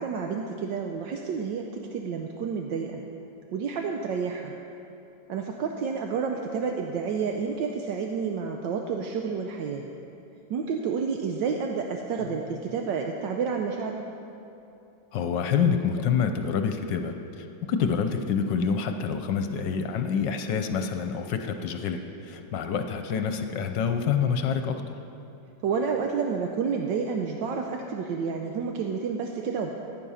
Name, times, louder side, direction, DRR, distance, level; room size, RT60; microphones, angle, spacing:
voice 1, 0.0-3.0 3.5-4.5 5.3-9.8 10.5-14.1 25.6-29.7, right 5 dB, 75° right, 3 dB, 1.4 m, -30 dB
voice 2, 15.1-24.8, left 6 dB, 70° left, 7 dB, 1.3 m, -27 dB
15.0 x 9.7 x 5.6 m, 2.8 s
omnidirectional pair, 2.1 m